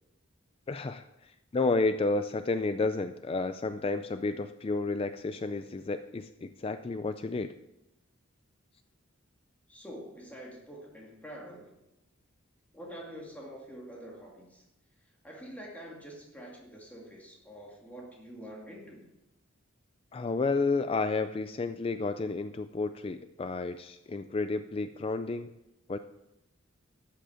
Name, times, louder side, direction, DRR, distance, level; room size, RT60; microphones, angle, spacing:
voice 1, 0.7-7.5 20.1-25.5 25.9-26.0, left 3 dB, 30° left, 11 dB, 0.3 m, -31 dB
voice 2, 9.7-11.7 12.7-14.6 15.2-19.1, equal, 10° left, -2 dB, 2.4 m, -46 dB
12.5 x 8.7 x 5.0 m, 0.92 s
head